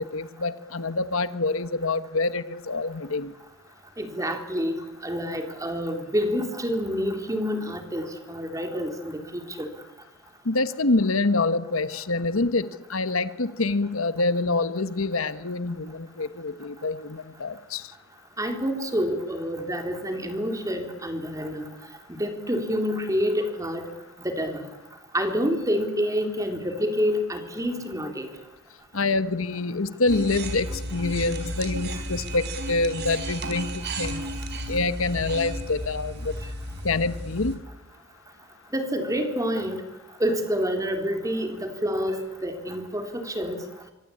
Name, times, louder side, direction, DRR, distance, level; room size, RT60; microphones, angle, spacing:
voice 1, 0.0-3.3 10.4-17.9 28.9-34.4 34.7-36.3 36.8-37.6, left 3 dB, 80° left, 13 dB, 1.3 m, -26 dB
voice 2, 4.0-4.7 5.0-9.7 18.4-21.7 22.2-23.8 24.2-24.6 25.1-28.3 31.9-32.0 38.7-39.8 40.2-43.6, equal, 15° right, 5 dB, 3.8 m, -28 dB
sound 1, 30.1-37.6, right 1 dB, 55° right, 4.6 m, -33 dB
25.5 x 24.5 x 8.7 m, 0.98 s
head